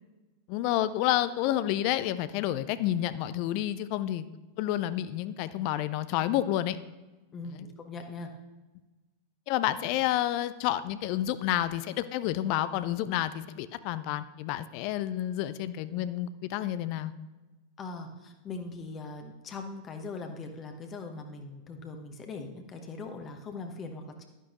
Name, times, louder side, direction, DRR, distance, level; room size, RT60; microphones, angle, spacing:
voice 1, 0.5-4.2 4.6-6.8 9.5-17.1, left 13 dB, 45° left, 14 dB, 0.4 m, -29 dB
voice 2, 7.3-8.3 17.8-24.3, left 3 dB, 25° left, 4 dB, 1.1 m, -41 dB
11.5 x 10.0 x 3.0 m, 1.1 s
figure-of-eight pair, 90°, 0 cm